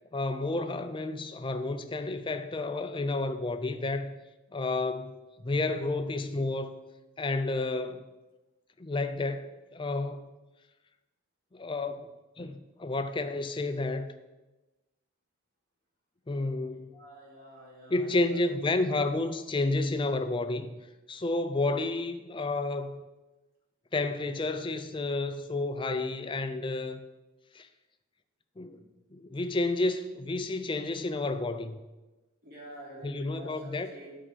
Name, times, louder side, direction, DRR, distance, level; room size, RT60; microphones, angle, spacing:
voice 1, 0.1-4.2 4.5-5.1 5.4-6.8 7.2-8.0 8.8-10.3 11.5-14.1 16.3-17.0 17.9-20.8 21.1-23.1 23.9-27.0 27.5-27.7 28.6-28.8 29.1-31.8 33.0-33.9, left 2 dB, 25° left, 10 dB, 0.4 m, -31 dB
voice 2, 16.7-18.5 32.4-34.1, right 1 dB, 45° right, -5 dB, 3.2 m, -48 dB
9.9 x 4.9 x 5.1 m, 1.1 s
head